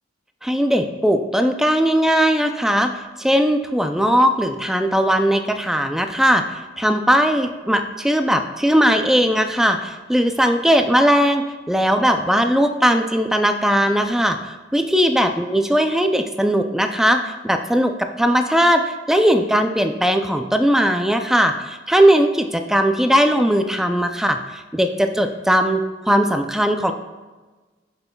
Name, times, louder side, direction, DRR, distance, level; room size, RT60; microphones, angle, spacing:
voice 1, 0.4-2.9 3.2-26.9, equal, 5° right, 6 dB, 0.3 m, -18 dB
10.5 x 6.7 x 2.3 m, 1.3 s
head